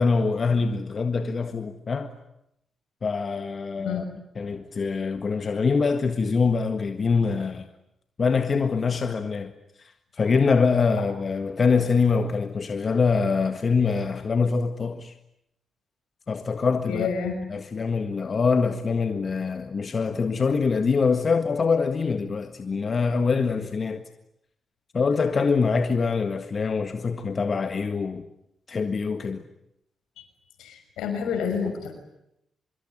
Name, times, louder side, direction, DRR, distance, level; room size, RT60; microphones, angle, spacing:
voice 1, 0.0-2.1 3.0-4.0 4.4-7.7 8.2-9.5 9.8-15.1 16.3-17.1 17.5-24.0 24.9-28.2 28.7-29.4, left 5 dB, 50° left, 1.7 m, -24 dB
voice 2, 16.9-17.4 30.2-30.3 30.6-31.9, left 6 dB, 85° left, 6.3 m, -29 dB
25.5 x 22.0 x 10.0 m
supercardioid pair, 50°, 0 cm